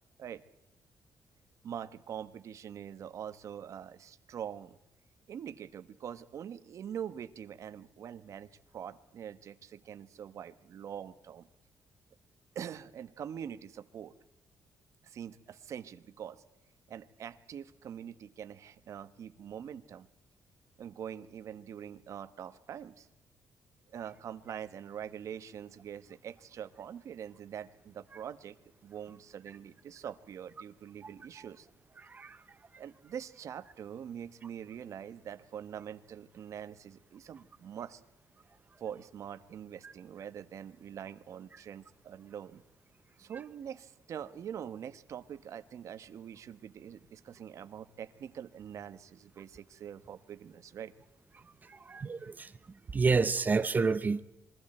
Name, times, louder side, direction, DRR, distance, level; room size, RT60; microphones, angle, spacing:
voice 1, 1.6-4.8 5.3-11.5 12.5-14.1 15.0-16.4 16.9-20.1 20.8-23.1 23.9-28.6 28.8-31.7 32.8-38.0 38.8-42.6 43.2-50.9, right 9 dB, 60° right, 1.3 m, -44 dB
voice 2, 32.0-32.4 39.8-39.9 51.6-52.5 52.9-54.2, right 4 dB, 30° right, 0.8 m, -29 dB
27.5 x 22.5 x 4.4 m
cardioid pair, 115°, 6 cm